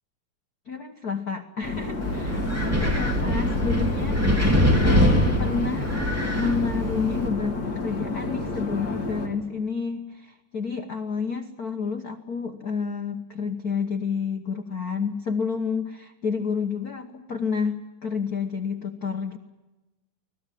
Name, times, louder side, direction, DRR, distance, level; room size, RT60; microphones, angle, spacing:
voice 1, 0.7-4.5 4.8-6.1 6.4-19.4, left 5 dB, 85° left, 5 dB, 0.8 m, -30 dB
sound 1, 1.6-9.3, left 3 dB, 30° left, 3.6 m, -30 dB
Wind, 2.0-7.3, equal, 5° right, 2.5 m, -23 dB
25.0 x 18.0 x 9.2 m, 1.1 s
omnidirectional pair, 3.7 m